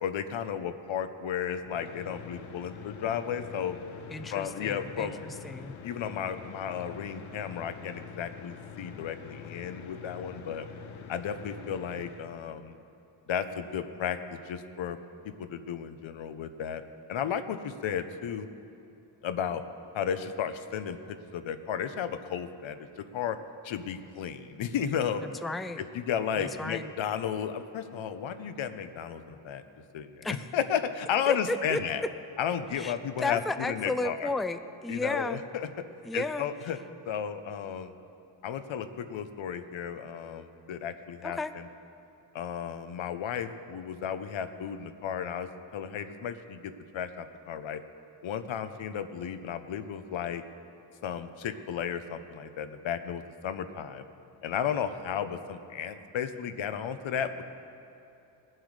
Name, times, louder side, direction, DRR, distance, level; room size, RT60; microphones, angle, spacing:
voice 1, 0.0-3.8 4.3-5.2 5.8-10.7 11.1-12.8 13.3-15.0 15.2-16.8 17.1-18.5 19.2-19.6 19.9-23.4 23.6-25.2 25.8-29.6 29.9-32.0 32.4-34.3 34.9-35.7 36.1-36.8 37.0-37.9 38.4-41.7 42.3-47.8 48.2-50.4 51.0-54.0 54.4-57.4, left 8 dB, 75° left, 10 dB, 0.9 m, -33 dB
sound 1, 1.6-12.3, left 6 dB, 90° left, 1.2 m, -45 dB
voice 2, 4.1-5.7 25.4-25.8 26.4-26.9 30.2-30.4 31.3-31.8 32.8-35.4 36.0-36.5 41.2-41.5, left 2 dB, ahead, 10 dB, 0.5 m, -33 dB
20.0 x 7.7 x 4.9 m, 2.8 s
cardioid pair, 70°, 47 cm